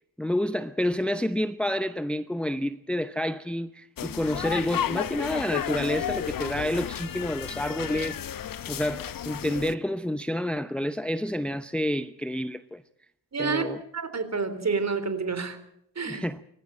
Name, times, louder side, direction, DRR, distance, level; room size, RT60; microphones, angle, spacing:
voice 1, 0.2-8.2 8.7-12.8 13.4-13.8 16.1-16.4, left 1 dB, ahead, 0.8 m, -29 dB
sound 1, 4.0-9.7, left 10 dB, 45° left, 1.0 m, -32 dB
voice 2, 13.3-13.6 13.9-15.6 16.0-16.2, right 4 dB, 35° right, 3.9 m, -28 dB
26.0 x 14.5 x 9.0 m
hypercardioid pair, 50°, 47 cm